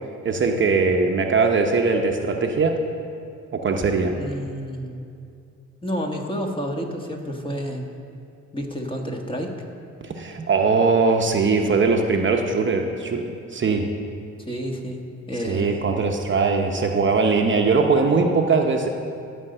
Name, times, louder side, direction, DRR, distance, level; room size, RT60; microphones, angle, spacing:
voice 1, 0.2-2.8 3.5-4.1 10.0-13.9 15.4-18.9, right 4 dB, 40° right, 3 dB, 0.9 m, -21 dB
voice 2, 4.1-5.0 5.8-7.9 8.5-9.6 14.5-15.9, equal, 15° left, 1 dB, 1.4 m, -30 dB
13.5 x 5.3 x 7.9 m, 2.5 s
cardioid pair, 90°, 30 cm